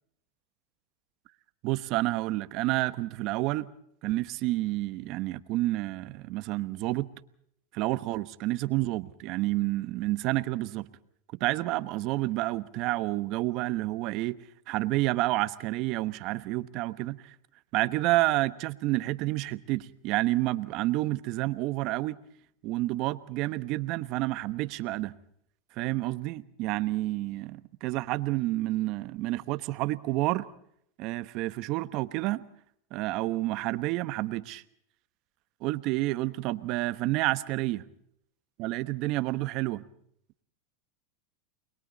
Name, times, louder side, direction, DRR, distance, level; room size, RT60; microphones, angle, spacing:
voice 1, 1.6-3.7 4.0-7.1 7.7-10.9 11.4-14.4 14.7-17.3 17.7-22.2 22.6-25.1 25.8-30.5 31.0-32.4 32.9-34.6 35.6-37.9 38.6-39.8, right 18 dB, 50° right, 1.1 m, -29 dB
29.5 x 22.0 x 4.1 m
supercardioid pair, 120°, 0 cm